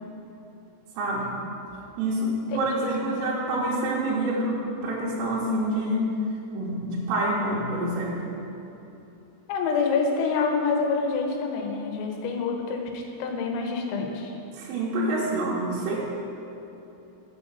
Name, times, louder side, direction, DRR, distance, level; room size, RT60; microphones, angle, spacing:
voice 1, 1.0-1.3 2.0-6.1 6.5-8.2 14.5-16.0, right 1 dB, 75° right, -6 dB, 2.8 m, -27 dB
voice 2, 2.5-2.9 9.5-14.3, left 4 dB, 85° left, 3 dB, 3.6 m, -27 dB
6.9 x 6.5 x 6.1 m, 2.9 s
omnidirectional pair, 6.0 m